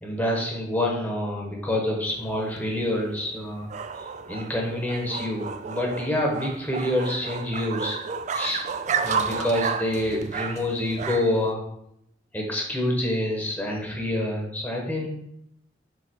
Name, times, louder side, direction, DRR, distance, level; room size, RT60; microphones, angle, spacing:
voice 1, 0.0-3.7 4.0-8.0 8.3-11.6 12.3-15.1, left 1 dB, 10° left, -1 dB, 1.1 m, -27 dB
sound 1, 2.1-11.5, right 6 dB, 40° right, 0.3 m, -32 dB
6.5 x 3.8 x 4.4 m, 0.76 s
head